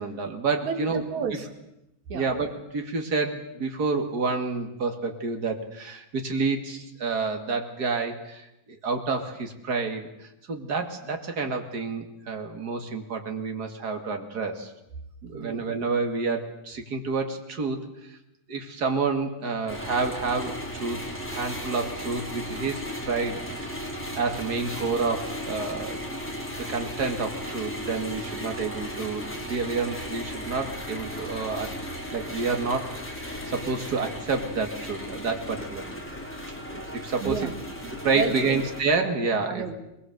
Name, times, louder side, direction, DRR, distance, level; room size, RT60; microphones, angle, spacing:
voice 1, 0.0-1.0 2.1-14.7 15.2-17.8 18.1-18.2 18.5-21.0 21.3-23.8 24.1-26.0 26.6-31.7 32.1-32.9 33.2-35.8 36.7-37.5 38.0-39.6, right 4 dB, 35° right, 5 dB, 2.3 m, -29 dB
voice 2, 0.6-1.5 2.1-2.3 15.3-15.7 37.2-37.6 38.1-38.6 39.5-39.7, right 6 dB, 65° right, 5 dB, 3.5 m, -31 dB
sound 1, 19.7-38.8, equal, 5° left, 3.1 m, -36 dB
21.5 x 21.0 x 8.0 m, 0.88 s
omnidirectional pair, 3.6 m